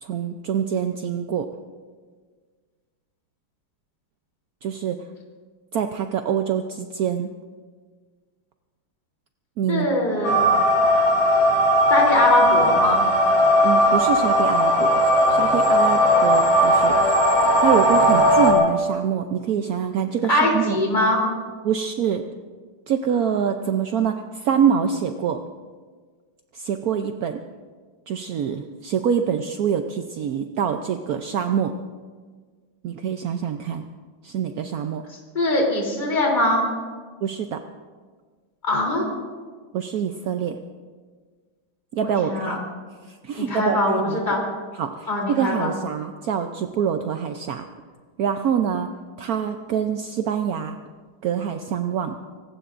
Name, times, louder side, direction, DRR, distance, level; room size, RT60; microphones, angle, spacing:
voice 1, 0.0-1.5 4.6-5.0 5.7-7.3 9.6-9.9 10.5-10.7 13.6-15.0 15.3-17.0 17.6-20.8 21.6-22.2 22.9-25.4 26.5-27.4 28.1-31.8 32.8-33.9 34.2-35.0 37.2-37.6 39.7-40.6 41.9-42.6 43.1-44.2 44.8-47.7 48.2-48.9 49.2-50.8 51.2-52.2, right 8 dB, 65° right, 6 dB, 0.9 m, -25 dB
voice 2, 9.7-10.4 11.9-13.0 20.3-21.2 35.3-36.6 38.6-39.1 42.0-42.6 43.4-44.4 45.1-45.7, left 1 dB, 20° left, -2 dB, 3.4 m, -21 dB
sound 1, 10.2-18.5, equal, 45° left, 4.9 m, -18 dB
25.5 x 19.0 x 2.6 m, 1.5 s
omnidirectional pair, 2.3 m